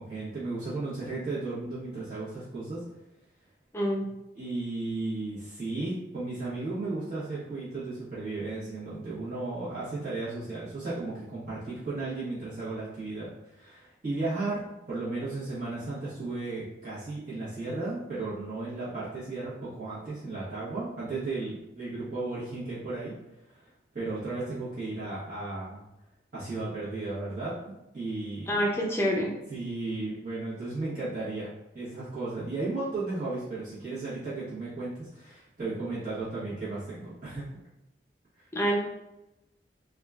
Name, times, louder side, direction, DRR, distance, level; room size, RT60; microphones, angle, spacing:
voice 1, 0.0-2.8 4.3-13.3 13.5-23.2 23.5-23.6 23.9-25.8 26.3-28.6 29.5-37.4, right 2 dB, 50° right, -12 dB, 1.2 m, -35 dB
voice 2, 3.7-4.1 28.5-29.3 38.5-38.8, equal, 15° left, -3 dB, 0.5 m, -26 dB
3.7 x 2.3 x 2.3 m, 0.92 s
head